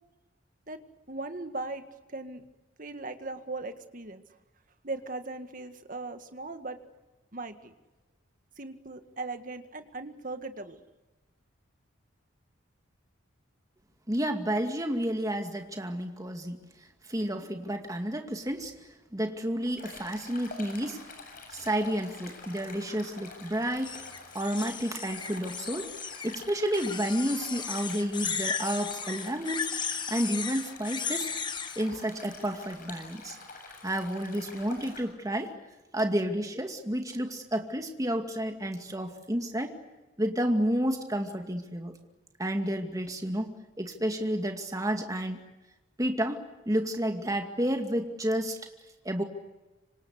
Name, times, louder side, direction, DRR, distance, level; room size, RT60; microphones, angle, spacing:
voice 1, 1.1-1.8 2.1-2.4 2.8-4.2 4.8-6.8 7.3-7.7 8.6-10.8, right 3 dB, 45° right, 8 dB, 1.9 m, -38 dB
voice 2, 14.1-16.6 17.1-18.7 19.1-21.0 21.5-24.1 24.3-25.9 26.2-31.3 31.8-33.4 33.8-35.5 35.9-39.8 40.2-42.0 42.4-45.4 46.0-48.6 49.0-49.2, equal, 15° right, 5 dB, 2.3 m, -31 dB
Stream, 19.8-35.0, left 3 dB, 45° left, 7.5 m, -47 dB
sound 1, 23.8-26.4 26.7-31.8, left 6 dB, 25° left, 1.3 m, -35 dB
26.5 x 25.5 x 8.2 m, 1.1 s
head